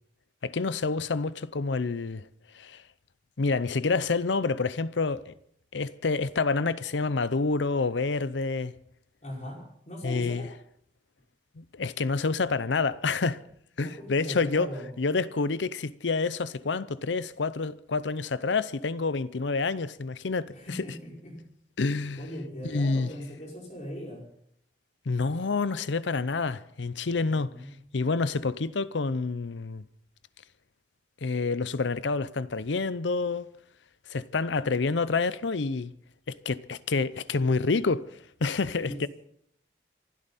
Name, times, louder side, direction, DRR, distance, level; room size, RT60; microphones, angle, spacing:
voice 1, 0.4-2.3 2.5-2.8 3.4-5.3 5.7-8.7 10.0-10.5 11.6-13.4 13.8-14.7 15.0-20.5 21.8-22.2 22.6-23.1 25.1-27.5 27.9-29.8 31.2-33.5 34.1-35.9 36.3-38.1 38.4-39.1, left 4 dB, 85° left, 0.7 m, -28 dB
voice 2, 9.2-10.5 13.8-14.9 20.5-21.4 22.2-24.3 27.3-27.7 38.8-39.1, equal, 40° left, 5.5 m, -39 dB
26.5 x 12.5 x 4.2 m
head